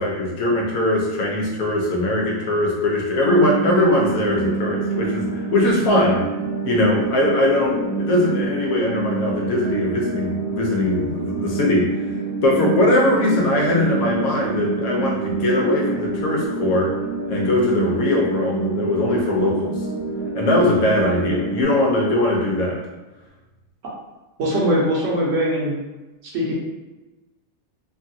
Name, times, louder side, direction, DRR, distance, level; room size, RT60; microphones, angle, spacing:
voice 1, 0.0-6.2 6.6-11.9 12.4-16.9 17.3-19.8 20.3-22.8, left 1 dB, 85° left, -2 dB, 1.2 m, -20 dB
sound 1, 3.2-21.6, right 3 dB, 55° left, 1.1 m, -27 dB
voice 2, 24.4-25.7 26.3-26.5, equal, 65° right, -5 dB, 1.2 m, -21 dB
3.1 x 2.3 x 2.7 m, 1.1 s
omnidirectional pair, 1.4 m